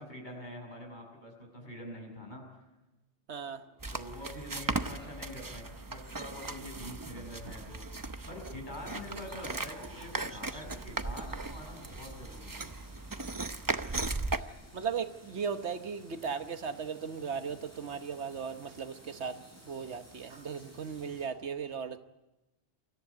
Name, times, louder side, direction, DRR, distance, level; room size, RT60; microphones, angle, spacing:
voice 1, 0.0-2.6 3.9-7.8 8.2-12.7, left 1 dB, 45° left, 6.5 m, -45 dB
voice 2, 3.3-3.7 14.7-22.0, right 6 dB, 80° right, 1.4 m, -37 dB
sound 1, 3.8-14.4, right 3 dB, 20° right, 0.7 m, -37 dB
sound 2, 8.7-21.3, equal, 15° left, 6.7 m, -56 dB
25.0 x 14.5 x 9.6 m
omnidirectional pair, 1.1 m